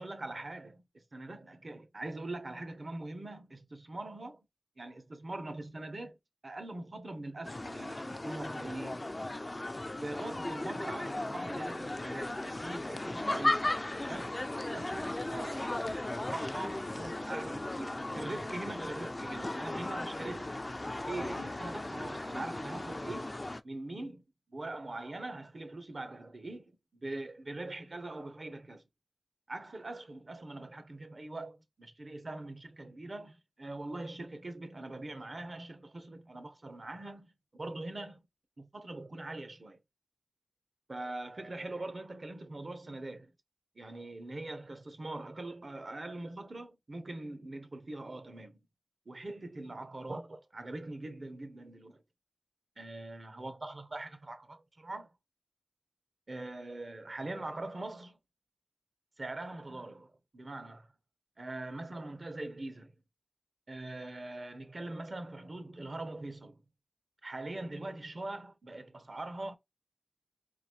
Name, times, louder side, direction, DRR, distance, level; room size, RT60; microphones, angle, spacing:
voice 1, 0.0-4.4 4.8-6.2 6.4-9.1 10.0-13.7 14.1-20.6 21.0-23.3 23.6-24.2 24.5-28.8 29.5-38.2 38.6-39.8 40.9-43.3 43.8-48.6 49.1-52.0 52.8-55.1 56.3-58.2 59.2-60.9 61.4-62.9 63.7-66.6 67.2-69.6, right 2 dB, 60° right, 0.9 m, -42 dB
sound 1, 7.4-23.6, left 2 dB, 40° left, 0.4 m, -36 dB
3.9 x 2.7 x 3.0 m
wide cardioid pair, 50°, 0 cm